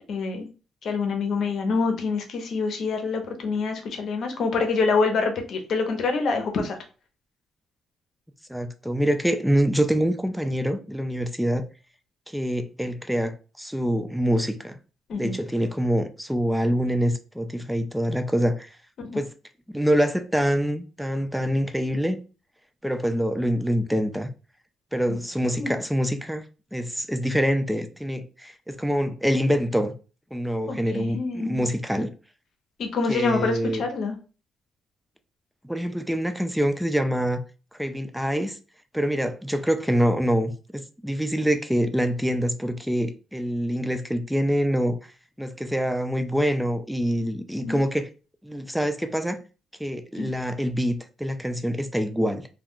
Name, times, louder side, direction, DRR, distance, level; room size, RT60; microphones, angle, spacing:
voice 1, 0.1-0.5 0.8-6.8 15.1-15.3 19.1-19.2 25.1-25.2 25.6-25.7 30.7-31.7 32.8-34.2 47.6-47.8 50.2-50.3, left 4 dB, 65° left, 0.7 m, -26 dB
voice 2, 8.5-11.7 12.3-14.8 15.2-18.8 19.1-19.3 19.7-22.2 22.8-24.3 24.9-26.4 26.7-29.9 30.3-32.1 33.1-33.8 35.6-37.4 37.7-38.6 38.9-45.1 45.4-48.1 48.4-49.4 49.8-52.5, equal, ahead, 0.4 m, -25 dB
2.3 x 2.2 x 3.6 m
cardioid pair, 90°, 0 cm